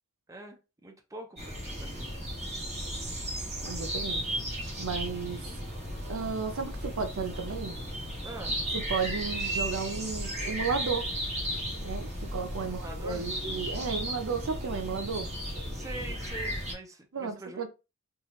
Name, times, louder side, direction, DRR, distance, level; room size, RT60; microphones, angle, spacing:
voice 1, 0.3-2.1 8.2-8.6 12.6-13.3 15.7-17.6, right 2 dB, 15° right, 0.6 m, -44 dB
sound 1, 1.4-16.7, equal, 30° right, 1.4 m, -35 dB
voice 2, 3.6-4.2 4.8-5.5 6.1-7.8 8.7-11.1 11.8-15.3 17.1-17.7, right 5 dB, 70° right, 0.6 m, -33 dB
3.6 x 2.4 x 3.0 m
head